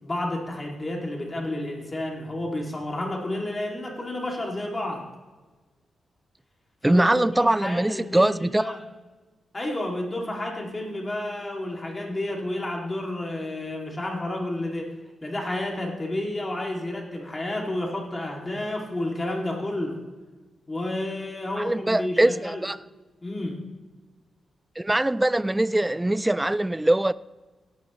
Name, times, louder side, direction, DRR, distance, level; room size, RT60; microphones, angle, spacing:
voice 1, 0.0-5.0 6.8-8.8 9.5-14.9 15.2-20.0 20.7-22.6 23.2-23.6, left 1 dB, 25° left, 2.5 m, -31 dB
voice 2, 6.8-8.7 21.6-22.8 24.8-27.1, right 1 dB, 10° right, 0.4 m, -22 dB
17.0 x 11.0 x 3.1 m
cardioid pair, 100°, 0 cm